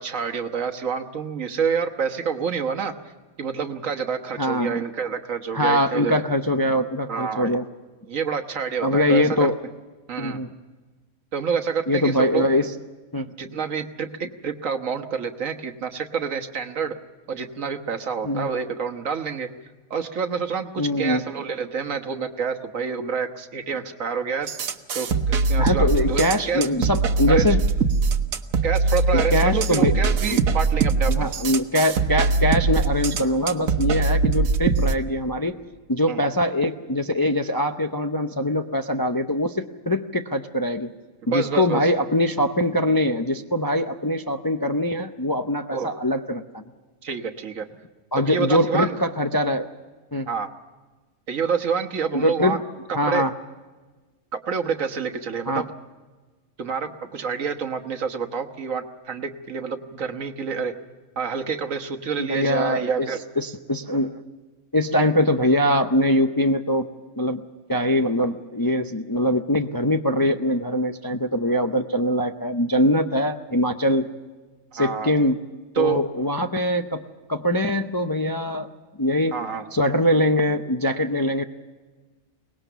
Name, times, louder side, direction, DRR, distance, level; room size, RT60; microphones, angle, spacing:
voice 1, 0.0-2.9 3.4-6.2 7.1-7.6 8.1-9.5 10.1-10.4 11.3-12.4 13.4-16.9 17.3-19.5 19.9-24.5 24.9-25.1 25.5-26.7 27.3-27.6 28.6-31.3 36.1-36.2 41.2-41.8 45.7-45.9 47.0-47.7 48.2-48.9 50.3-50.5 51.3-52.6 52.9-53.2 54.5-55.7 56.6-60.7 61.2-63.2 74.8-75.1 75.7-76.0 79.3-79.6, right 6 dB, 70° right, 7 dB, 1.6 m, -27 dB
voice 2, 4.4-4.8 5.5-7.7 8.8-9.6 10.2-10.5 11.9-12.7 13.1-13.3 18.2-18.5 20.8-21.2 25.6-27.6 29.1-29.9 30.2-30.4 31.1-35.6 35.9-40.9 41.3-46.6 48.1-49.7 50.1-50.3 52.1-52.6 52.9-53.3 55.5-55.6 62.2-63.1 63.4-64.2 64.7-66.9 67.2-67.4 67.7-74.1 74.7-75.4 75.7-77.0 77.3-78.7 79.0-79.3 79.7-81.4, left 1 dB, 25° left, 6 dB, 0.5 m, -22 dB
sound 1, 24.5-34.9, right 4 dB, 90° right, 1.4 m, -22 dB
23.5 x 19.5 x 6.8 m, 1.3 s
omnidirectional pair, 1.4 m